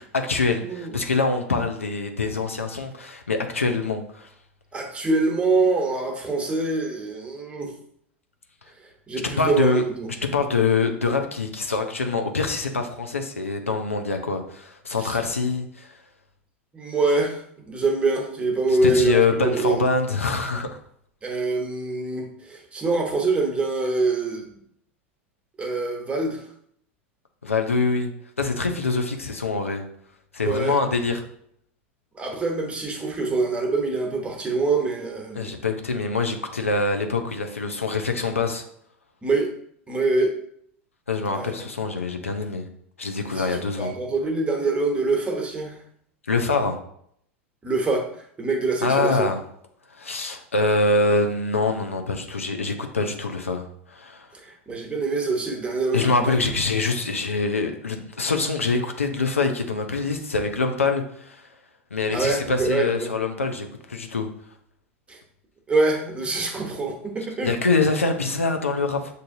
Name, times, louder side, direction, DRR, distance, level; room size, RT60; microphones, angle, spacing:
voice 1, 0.0-4.3 9.2-9.8 10.3-15.9 18.8-20.7 27.4-28.1 28.4-29.9 30.3-31.2 35.4-38.7 41.1-42.7 43.0-43.9 46.3-46.8 48.8-49.4 49.9-54.3 55.9-61.5 61.9-64.3 67.4-69.1, left 3 dB, 90° left, 4 dB, 0.6 m, -24 dB
voice 2, 0.6-0.9 4.7-7.7 9.1-10.1 15.0-15.2 16.7-17.4 17.6-19.8 21.2-24.5 25.6-26.4 30.4-30.8 32.1-35.5 39.2-39.5 39.9-40.3 41.3-41.7 43.4-45.8 47.6-48.1 48.4-49.3 54.4-56.4 62.1-63.1 65.1-65.2 65.7-67.5, right 3 dB, 15° right, 1 dB, 1.0 m, -24 dB
6.5 x 2.7 x 2.6 m, 0.67 s
hypercardioid pair, 90°, 7 cm